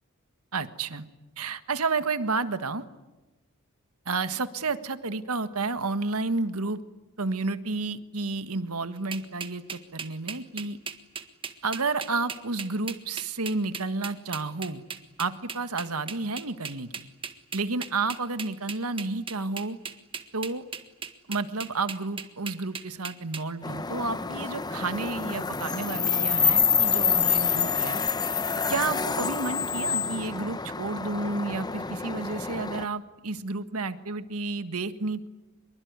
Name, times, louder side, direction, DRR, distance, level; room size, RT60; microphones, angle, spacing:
voice 1, 0.5-1.1 1.4-2.9 4.1-6.8 7.2-10.8 11.6-14.8 15.2-17.1 17.5-19.8 20.3-20.6 21.3-28.0 28.7-35.3, right 3 dB, 85° right, 11 dB, 1.6 m, -31 dB
sound 1, 9.1-23.4, right 6 dB, 25° right, 1.7 m, -37 dB
sound 2, 23.6-32.9, left 6 dB, 20° left, 0.8 m, -27 dB
25.5 x 23.0 x 9.6 m, 1.1 s
head